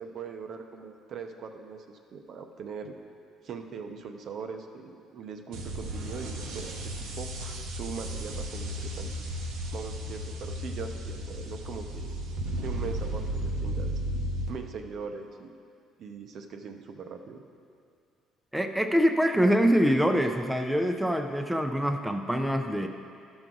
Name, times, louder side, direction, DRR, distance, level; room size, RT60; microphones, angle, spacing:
voice 1, 0.0-3.0 3.4-6.8 7.2-9.1 9.7-12.2 12.6-14.0 14.5-15.5 16.0-17.4, right 5 dB, 60° right, 5 dB, 0.7 m, -40 dB
sound 1, 5.5-14.5, right 1 dB, 80° right, 1.0 m, -34 dB
voice 2, 18.5-22.9, equal, 5° right, 5 dB, 0.5 m, -24 dB
12.0 x 6.1 x 3.8 m, 2.3 s
cardioid pair, 105°, 0 cm